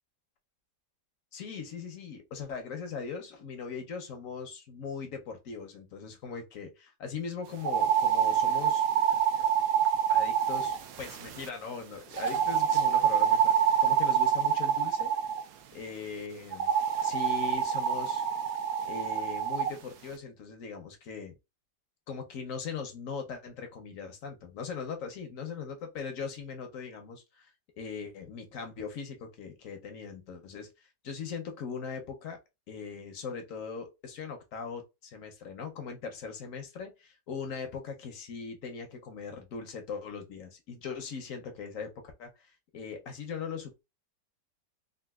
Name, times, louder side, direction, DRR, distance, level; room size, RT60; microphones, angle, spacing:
voice 1, 1.3-8.8 10.1-15.1 15.7-16.7 17.0-18.2 18.9-21.4 22.1-27.5 27.8-30.7 31.0-32.4 32.7-41.9 42.2-43.9, left 5 dB, 65° left, 0.8 m, -40 dB
sound 1, 7.6-11.5 12.1-15.4 16.5-19.7, right 9 dB, 70° right, 0.9 m, -26 dB
3.8 x 2.3 x 2.2 m
omnidirectional pair, 1.9 m